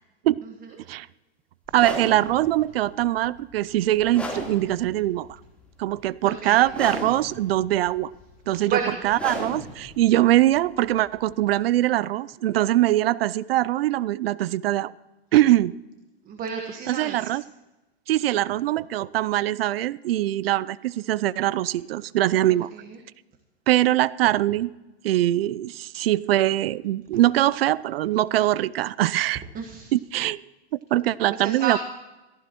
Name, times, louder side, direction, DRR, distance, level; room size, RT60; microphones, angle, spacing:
sound 1, 1.7-11.6, left 1 dB, 5° left, 3.5 m, -37 dB
voice 1, 1.7-5.3 5.8-8.1 8.5-8.8 9.0-14.9 15.3-15.7 16.9-17.4 18.1-22.7 23.7-24.7 25.0-29.4 29.9-30.4 30.7-31.8, right 14 dB, 65° right, 20 dB, 0.5 m, -22 dB
voice 2, 6.2-6.6 8.7-9.0 16.2-17.3 22.7-23.0 29.5-29.9 31.3-31.8, right 7 dB, 25° right, 5 dB, 1.5 m, -31 dB
22.5 x 14.5 x 3.0 m, 1.1 s
hypercardioid pair, 110°, 32 cm